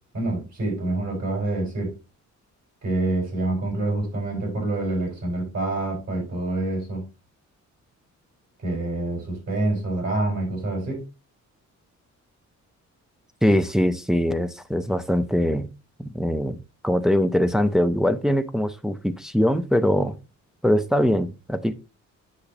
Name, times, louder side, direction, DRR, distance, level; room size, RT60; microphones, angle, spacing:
voice 1, 0.1-1.9 2.8-7.0 8.6-11.0, right 2 dB, 60° right, 5.0 m, -26 dB
voice 2, 13.4-15.7 16.0-16.6 16.8-20.1 20.6-21.7, equal, ahead, 0.3 m, -22 dB
8.2 x 6.6 x 2.9 m
wide cardioid pair, 170°, 30 cm